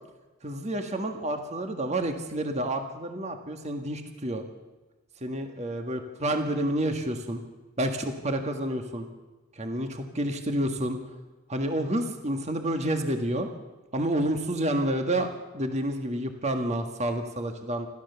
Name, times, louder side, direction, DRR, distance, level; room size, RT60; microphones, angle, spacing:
voice 1, 0.4-4.5 5.2-7.4 7.8-9.1 9.5-11.0 11.5-13.5 13.9-15.3 15.5-17.9, right 1 dB, 30° right, 5 dB, 1.7 m, -29 dB
28.0 x 13.5 x 7.0 m, 1.2 s
head